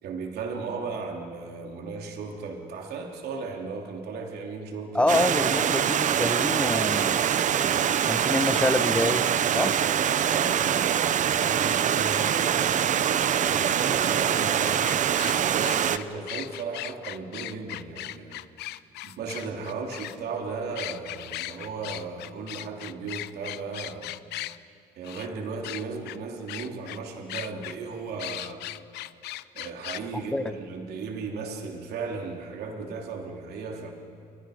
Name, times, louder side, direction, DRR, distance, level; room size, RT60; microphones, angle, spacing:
voice 1, 0.0-5.2 7.4-7.8 8.1-8.4 9.5-12.7 13.5-18.5 19.0-24.1 25.0-28.7 29.5-33.9, right 4 dB, 70° right, 2 dB, 3.2 m, -36 dB
voice 2, 4.9-7.2 8.1-9.7 30.3-30.5, left 1 dB, 5° left, 8 dB, 1.2 m, -26 dB
Stream, 5.1-16.0, right 9 dB, 45° right, 0.8 m, -24 dB
sound 1, 14.8-20.2 20.7-24.6 25.0-25.3 25.6-26.2 26.5-27.0 27.3-27.7 28.2-30.0, left 16 dB, 80° left, 0.6 m, -37 dB
29.0 x 23.0 x 5.1 m, 2.5 s
cardioid pair, 110°, 17 cm